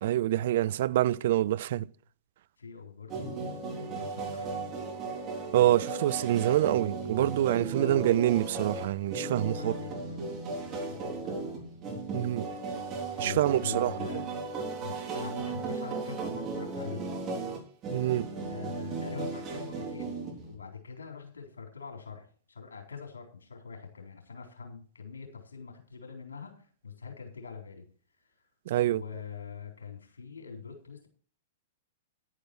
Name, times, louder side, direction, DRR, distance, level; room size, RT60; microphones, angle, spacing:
voice 1, 0.0-1.9 5.5-9.7 12.1-12.5 13.2-13.9 17.9-18.3 28.7-29.0, right 13 dB, 50° right, 0.4 m, -26 dB
voice 2, 2.6-4.8 7.8-8.1 9.4-10.4 10.6-11.7 13.2-14.3 14.8-17.3 18.4-27.8 28.2-28.3 28.9-31.1, left 5 dB, 70° left, 3.9 m, -44 dB
sound 1, 3.1-20.5, right 4 dB, 25° right, 3.8 m, -36 dB
10.5 x 9.7 x 4.4 m
figure-of-eight pair, 105°, 0 cm